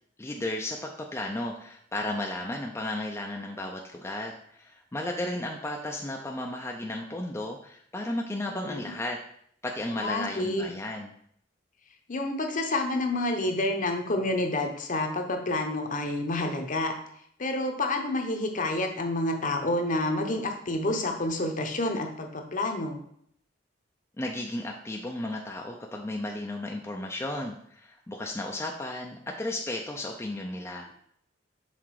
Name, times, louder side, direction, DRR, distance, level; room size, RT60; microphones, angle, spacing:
voice 1, 0.2-9.2 9.6-11.1 24.2-30.9, left 1 dB, 15° left, 1 dB, 0.4 m, -34 dB
voice 2, 8.6-8.9 9.9-10.6 12.1-16.9 17.4-23.0 30.9-31.0, left 2 dB, 45° left, 4 dB, 0.8 m, -29 dB
5.9 x 3.8 x 4.7 m, 0.66 s
head